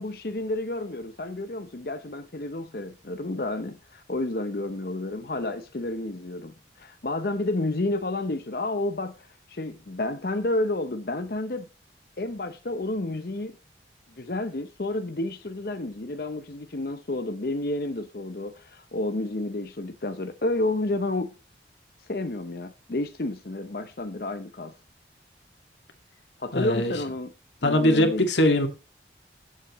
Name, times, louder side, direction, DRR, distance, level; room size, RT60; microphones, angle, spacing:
voice 1, 0.0-11.7 12.2-13.6 14.2-21.3 22.0-24.8 26.4-27.3 27.6-28.3, left 2 dB, 55° left, 0.8 m, -30 dB
voice 2, 26.5-26.9 27.6-28.7, left 1 dB, 85° left, 2.1 m, -21 dB
15.5 x 7.5 x 3.1 m
head